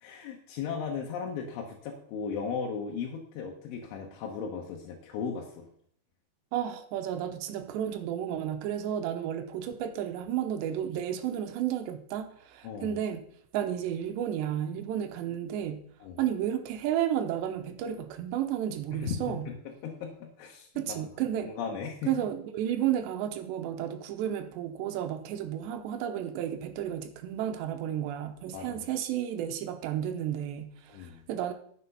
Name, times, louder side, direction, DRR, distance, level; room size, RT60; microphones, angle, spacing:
voice 1, 0.0-5.7 12.6-13.0 16.0-16.2 18.9-21.0 21.4-22.1 28.5-28.9 30.9-31.2, left 6 dB, 90° left, -1 dB, 3.6 m, -37 dB
voice 2, 6.5-13.2 13.5-15.8 16.2-19.5 20.8-21.5 22.1-31.5, right 10 dB, 80° right, 7 dB, 2.9 m, -32 dB
10.0 x 7.4 x 5.6 m, 0.62 s
omnidirectional pair, 5.3 m